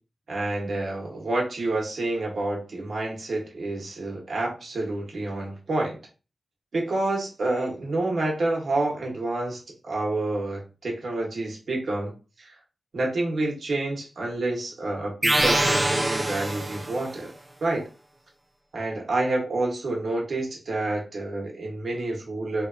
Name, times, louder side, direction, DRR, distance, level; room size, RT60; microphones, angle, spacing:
voice 1, 0.3-6.0 6.7-12.1 12.4-12.5 12.9-17.3 17.6-17.9 18.7-22.7, right 2 dB, 75° right, -1 dB, 0.8 m, -28 dB
sound 1, 15.2-17.1, right 1 dB, 20° right, 0.3 m, -24 dB
2.8 x 2.2 x 2.4 m, 0.33 s
wide cardioid pair, 125°, 0 cm